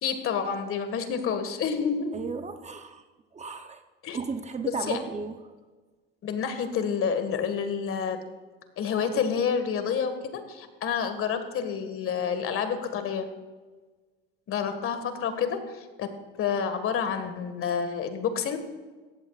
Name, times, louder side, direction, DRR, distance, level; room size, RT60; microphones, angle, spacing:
voice 1, 0.0-2.2 4.0-4.2 4.6-5.0 6.2-8.2 8.8-13.3 14.5-16.1 16.4-18.6, left 7 dB, 45° left, 8 dB, 1.9 m, -29 dB
voice 2, 2.1-3.0 3.3-3.8 4.1-5.4, right 5 dB, 25° right, 7 dB, 0.8 m, -34 dB
17.5 x 14.5 x 2.5 m, 1.3 s
supercardioid pair, 100°, 30 cm